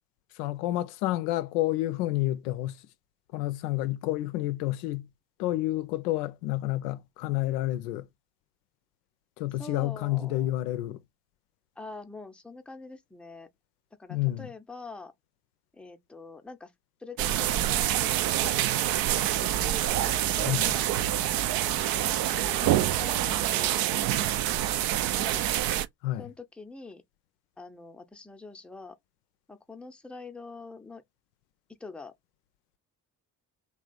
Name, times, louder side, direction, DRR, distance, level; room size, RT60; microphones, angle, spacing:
voice 1, 0.4-2.8 3.3-5.1 5.4-8.1 9.4-11.0 14.1-14.5 20.5-20.6 26.0-26.3, left 16 dB, 70° left, 0.6 m, -29 dB
voice 2, 9.6-10.5 11.8-13.5 14.0-15.1 15.7-16.7 17.0-18.5 19.4-25.5 26.2-27.0 27.6-29.0 29.5-31.0 31.8-32.1, left 3 dB, ahead, 0.6 m, -45 dB
sound 1, 17.2-25.9, right 12 dB, 50° right, 0.5 m, -26 dB
3.2 x 2.3 x 3.8 m
figure-of-eight pair, 45°, 48 cm